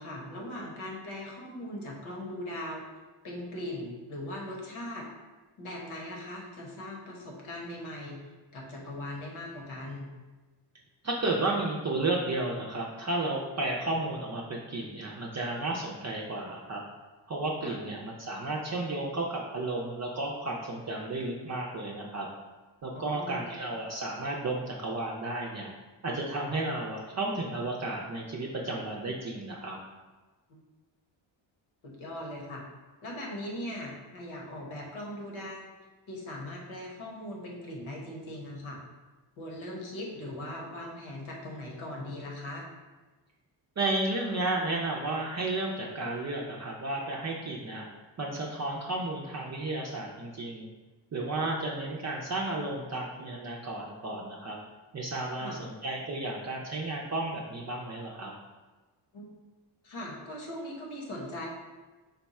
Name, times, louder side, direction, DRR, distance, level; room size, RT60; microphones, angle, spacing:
voice 1, 0.0-2.8 3.2-5.1 5.6-8.2 8.5-10.1 17.6-17.8 22.9-23.5 30.5-30.6 31.8-32.6 33.0-35.7 36.1-38.8 39.4-42.7 55.4-55.6 59.1-59.3 59.8-61.5, left 1 dB, 80° left, -1 dB, 1.2 m, -39 dB
voice 2, 11.0-16.8 17.3-22.3 22.8-25.7 26.0-29.8 43.8-47.9 48.2-50.7 51.1-54.6 54.9-58.3, right 2 dB, 35° right, -2 dB, 0.5 m, -33 dB
5.3 x 2.3 x 4.1 m, 1.2 s
cardioid pair, 105°, 48 cm